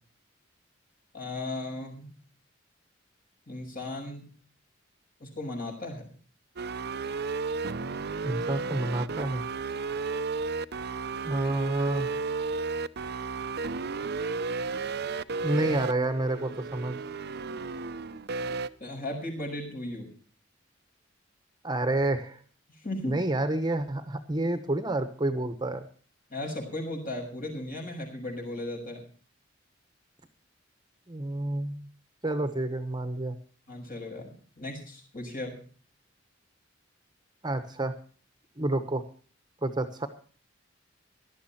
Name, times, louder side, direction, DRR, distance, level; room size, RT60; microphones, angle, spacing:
voice 1, 1.1-2.1 3.5-4.3 5.2-6.1 18.8-20.1 22.8-23.2 26.3-29.0 33.7-35.6, left 1 dB, 45° left, 1 dB, 6.5 m, -36 dB
sound 1, 6.6-18.7, right 4 dB, 55° right, 0.7 m, -33 dB
voice 2, 8.2-9.4 11.2-12.1 15.4-17.0 21.6-22.4 23.0-25.9 31.1-31.9 32.2-33.4 37.4-37.9 38.6-39.0 39.6-40.1, right 2 dB, 20° right, 9 dB, 1.2 m, -29 dB
18.0 x 12.5 x 4.4 m, 0.41 s
head